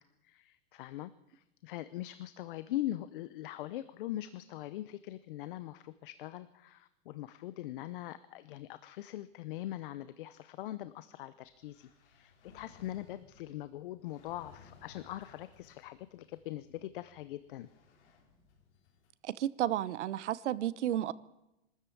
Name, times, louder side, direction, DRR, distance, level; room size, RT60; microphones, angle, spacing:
voice 1, 0.2-17.7, left 14 dB, 50° left, 0.8 m, -42 dB
sound 1, 11.4-19.1, left 4 dB, 70° left, 4.2 m, -61 dB
voice 2, 19.2-21.1, right 12 dB, 75° right, 1.0 m, -32 dB
23.0 x 13.0 x 8.5 m
supercardioid pair, 160°, 35 cm